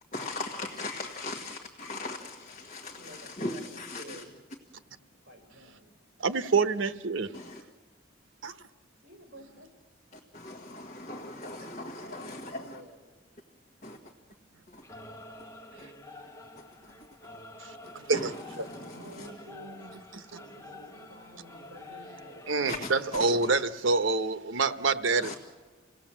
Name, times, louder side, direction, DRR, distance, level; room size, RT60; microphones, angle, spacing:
voice 1, 0.1-4.2 7.3-7.6 10.3-12.8 13.8-14.0 14.7-14.8 17.8-19.3 22.7-23.3 25.2-25.3, left 2 dB, 40° left, 1.5 m, -39 dB
voice 2, 2.9-4.4 4.8-5.9 8.2-8.4 9.0-9.7 11.2-13.5 14.1-14.3 15.4-15.5 18.6-22.5, right 1 dB, 55° right, 5.1 m, -51 dB
voice 3, 6.2-7.3 8.4-8.5 17.6-18.3 18.6-18.7 22.5-25.3, right 4 dB, 85° right, 0.9 m, -27 dB
Singing / Musical instrument, 14.8-23.7, left 2 dB, 15° left, 1.3 m, -48 dB
27.5 x 17.5 x 7.5 m
head